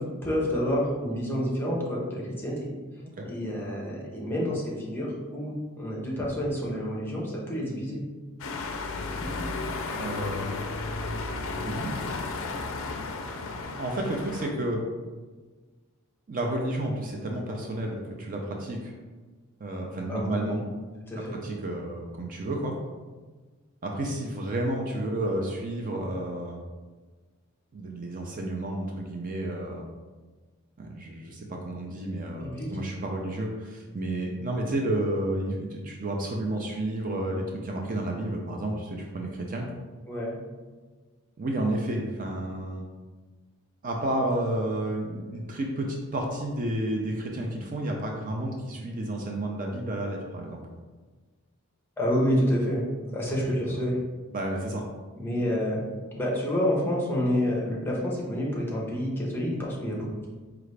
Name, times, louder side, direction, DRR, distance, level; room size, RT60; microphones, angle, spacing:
voice 1, 0.0-2.7 3.2-8.0 9.2-9.3 20.1-20.6 21.1-21.4 32.4-32.7 40.1-40.3 52.0-52.8 53.1-53.9 55.2-55.8 56.2-60.3, equal, 10° left, -4 dB, 0.7 m, -28 dB
sound 1, 8.4-14.5, left 3 dB, 60° left, 0.4 m, -33 dB
voice 2, 9.9-10.5 11.6-12.0 13.7-14.8 16.3-18.9 19.6-20.6 21.4-22.8 23.8-26.6 27.7-29.9 30.8-39.7 41.4-42.9 43.8-50.6 53.4-53.8 54.3-54.8, right 1 dB, 40° right, 1 dB, 0.4 m, -31 dB
4.7 x 2.4 x 3.2 m, 1.4 s
head